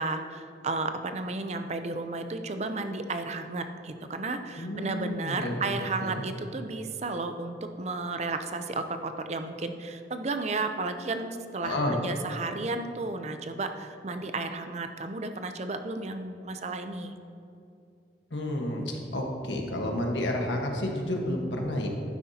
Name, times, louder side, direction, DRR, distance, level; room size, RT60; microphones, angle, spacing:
voice 1, 0.0-17.1, right 3 dB, 35° right, 7 dB, 0.5 m, -33 dB
voice 2, 4.5-6.2 11.6-12.0 18.3-21.9, left 1 dB, 85° left, 1 dB, 1.4 m, -31 dB
11.5 x 9.6 x 2.8 m, 2.6 s
head